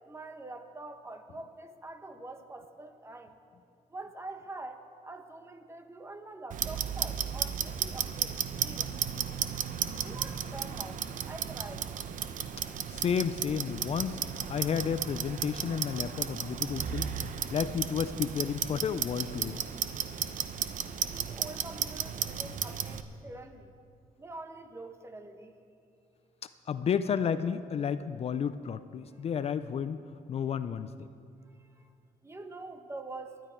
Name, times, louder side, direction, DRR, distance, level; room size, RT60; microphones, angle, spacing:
voice 1, 0.1-3.3 3.9-9.0 10.0-11.0 11.3-11.8 21.1-23.7 24.2-25.5 32.2-33.3, right 2 dB, 20° right, 7 dB, 1.0 m, -45 dB
Clock, 6.5-23.0, right 8 dB, 65° right, 0.7 m, -34 dB
voice 2, 12.9-14.2 14.5-17.1 17.5-19.6 26.7-30.0 30.3-30.9, left 7 dB, 45° left, 12 dB, 0.4 m, -31 dB
19.5 x 12.0 x 4.5 m, 2.4 s
cardioid pair, 130°, 14 cm